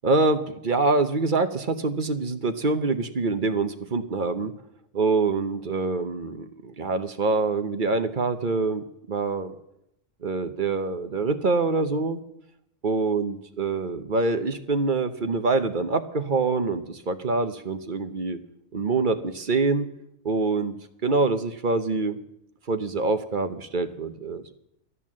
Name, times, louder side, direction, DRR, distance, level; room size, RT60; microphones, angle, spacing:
voice 1, 0.0-4.5 4.9-9.5 10.2-12.2 12.8-18.4 18.7-19.9 20.2-20.8 21.0-22.2 22.7-24.5, right 3 dB, 45° right, 10 dB, 1.0 m, -25 dB
12.5 x 11.0 x 7.4 m, 0.80 s
omnidirectional pair, 1.3 m